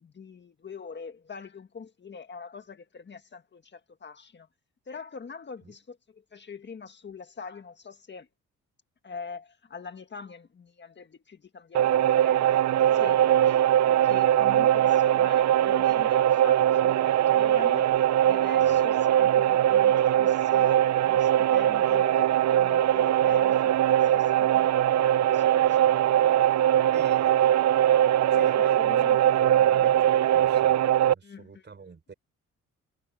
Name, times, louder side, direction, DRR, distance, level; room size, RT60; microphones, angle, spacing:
voice 1, 0.0-4.5 4.9-8.3 9.0-13.6 13.9-27.4 28.3-30.0 31.2-31.7, left 5 dB, 35° left, 1.7 m, -44 dB
sound 1, 11.7-31.1, right 11 dB, 60° right, 0.7 m, -21 dB
voice 2, 26.9-27.3 28.3-30.8 31.1-32.1, right 5 dB, 35° right, 5.3 m, -44 dB
cardioid pair, 90°, 30 cm